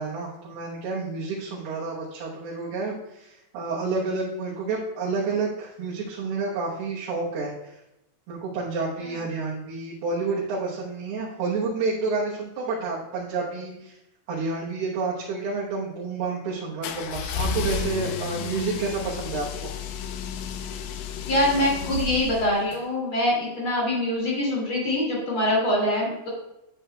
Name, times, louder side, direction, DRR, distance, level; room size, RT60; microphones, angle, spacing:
voice 1, 0.0-7.8 8.3-14.0 14.3-19.5, right 4 dB, 85° right, -6 dB, 3.2 m, -29 dB
sound 1, 16.8-22.8, left 6 dB, 85° left, 2.0 m, -32 dB
voice 2, 21.2-26.3, left 1 dB, 40° left, -4 dB, 2.8 m, -24 dB
9.5 x 7.7 x 2.3 m, 0.88 s
omnidirectional pair, 4.4 m